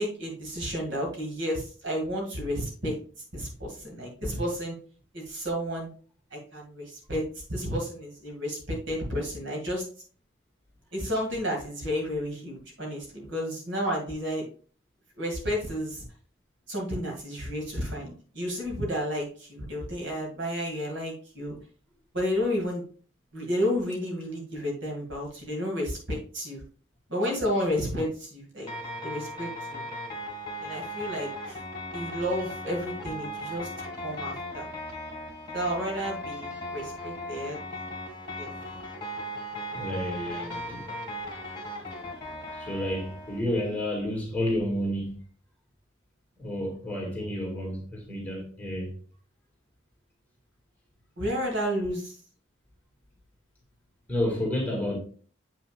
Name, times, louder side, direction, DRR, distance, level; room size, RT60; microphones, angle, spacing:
voice 1, 0.0-3.0 3.3-4.8 5.1-5.9 6.3-9.9 10.9-14.4 15.2-16.0 16.7-21.6 22.1-22.8 23.3-26.6 27.1-28.7 29.0-29.8 30.6-31.6 31.9-33.7 34.0-34.7 35.5-37.6 38.3-38.5 51.2-52.2, equal, 60° right, 2.3 m, -31 dB
sound 1, 28.7-43.4, equal, 25° left, 2.1 m, -37 dB
voice 2, 39.7-40.9 42.5-45.2 46.4-49.0 54.1-55.0, left 1 dB, 10° left, 2.2 m, -30 dB
7.6 x 5.8 x 2.5 m
head